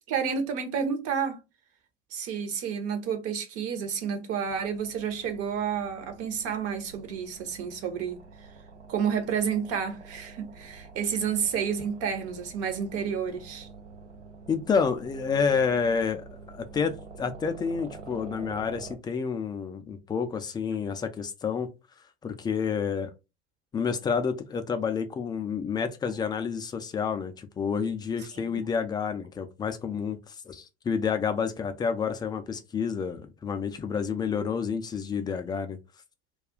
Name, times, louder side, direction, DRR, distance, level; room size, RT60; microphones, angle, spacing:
voice 1, 0.1-1.4 2.1-8.2 8.9-13.7 28.3-28.6, right 7 dB, 45° right, 0.8 m, -30 dB
sound 1, 4.4-19.0, right 4 dB, 85° right, 0.6 m, -47 dB
voice 2, 14.5-21.7 22.2-23.1 23.7-35.8, left 6 dB, 15° left, 0.3 m, -29 dB
2.4 x 2.3 x 3.5 m
figure-of-eight pair, 75°, 34 cm